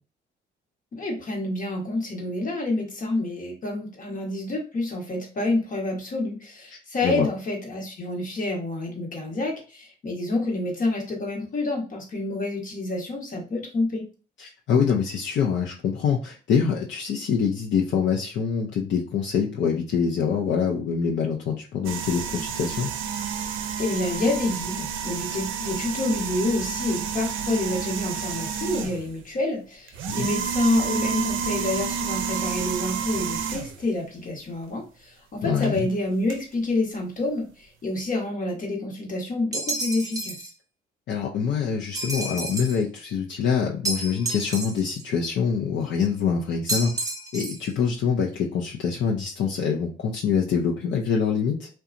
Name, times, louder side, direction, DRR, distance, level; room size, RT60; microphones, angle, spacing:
voice 1, 0.9-14.1 23.8-40.4, left 2 dB, 45° left, 0 dB, 1.1 m, -28 dB
voice 2, 6.7-7.3 14.4-22.9 30.2-30.3 35.4-35.9 41.1-46.9 47.3-51.7, left 6 dB, 65° left, -1 dB, 0.5 m, -25 dB
sound 1, 21.8-29.2 29.9-33.8 35.6-35.8 36.3-36.4, right 7 dB, 85° right, 0.5 m, -30 dB
sound 2, 39.5-40.5 41.9-42.8 43.8-45.0 46.7-47.7, right 2 dB, 15° right, 0.6 m, -30 dB
2.8 x 2.2 x 2.4 m, 0.35 s
cardioid pair, 90°, 20 cm